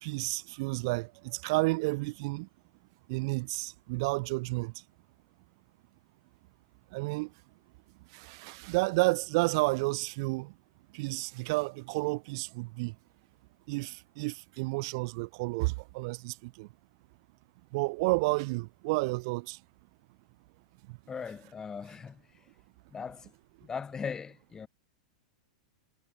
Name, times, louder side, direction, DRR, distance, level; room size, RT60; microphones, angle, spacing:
voice 1, 0.0-2.5 3.1-4.7 6.9-7.3 8.1-10.5 10.9-12.9 13.7-16.7 17.7-19.6 20.9-21.0, right 26 dB, 50° right, 3.0 m, -31 dB
voice 2, 21.1-22.5 22.9-23.3 23.6-24.7, left 6 dB, 15° left, 6.2 m, -39 dB
figure-of-eight pair, 95°, 3 cm